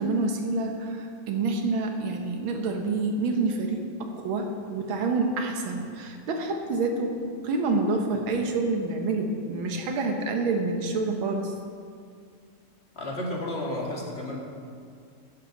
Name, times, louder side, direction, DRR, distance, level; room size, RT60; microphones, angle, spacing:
voice 1, 0.0-11.5, right 3 dB, 85° right, 3 dB, 1.9 m, -28 dB
voice 2, 13.0-14.4, left 1 dB, 30° left, -2 dB, 2.1 m, -32 dB
15.5 x 10.5 x 3.9 m, 2.2 s
omnidirectional pair, 2.2 m